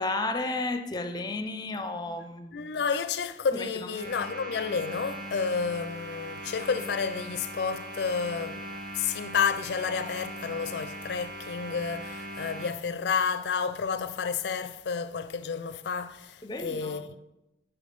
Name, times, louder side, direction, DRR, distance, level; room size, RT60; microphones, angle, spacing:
voice 1, 0.0-2.6 3.5-3.7 16.4-17.1, left 2 dB, 25° left, 0.5 m, -32 dB
voice 2, 2.5-8.7 8.9-17.2, left 5 dB, 75° left, 0.4 m, -30 dB
sound 1, 3.9-12.7, right 1 dB, 55° right, 1.2 m, -40 dB
7.1 x 5.2 x 5.0 m
head